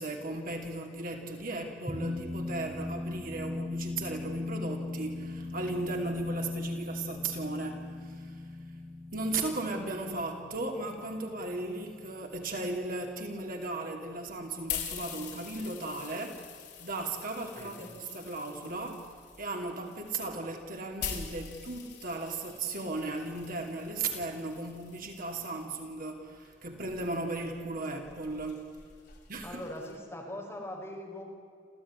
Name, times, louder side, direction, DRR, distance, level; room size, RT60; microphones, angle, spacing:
voice 1, 0.0-8.4 9.1-19.1 19.4-28.7 29.3-29.6, right 2 dB, 50° right, 3 dB, 2.7 m, -36 dB
sound 1, 1.9-12.6, left 2 dB, 15° right, 4.3 m, -39 dB
sound 2, 14.3-25.6 26.4-30.0, left 8 dB, 60° left, 5.1 m, -44 dB
voice 2, 17.6-17.9 29.4-31.2, left 1 dB, 15° left, -1 dB, 5.2 m, -41 dB
27.5 x 15.5 x 9.8 m, 2.3 s
head